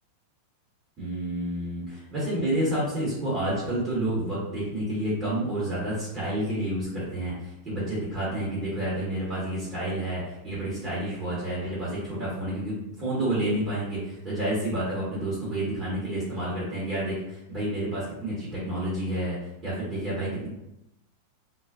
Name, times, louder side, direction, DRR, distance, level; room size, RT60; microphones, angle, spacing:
voice 1, 1.0-19.4 19.6-20.5, right 1 dB, 25° right, -9 dB, 1.2 m, -29 dB
2.4 x 2.3 x 2.5 m, 0.87 s
figure-of-eight pair, 90°, 0 cm